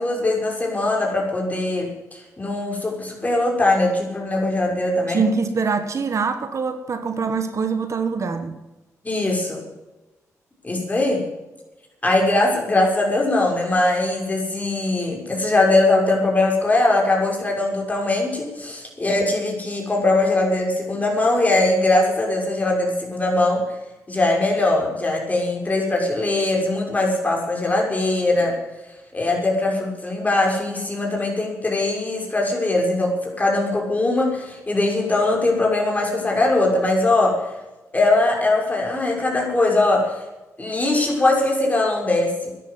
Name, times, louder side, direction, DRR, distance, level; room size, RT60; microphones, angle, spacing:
voice 1, 0.0-5.2 9.0-9.6 10.6-11.2 12.0-23.6 24.1-28.6 29.1-37.3 37.9-40.1 40.6-42.5, left 2 dB, 25° left, 0 dB, 6.3 m, -21 dB
voice 2, 5.1-8.6, right 5 dB, 55° right, 8 dB, 1.7 m, -24 dB
12.5 x 10.5 x 9.7 m, 1.1 s
cardioid pair, 70°, 6 cm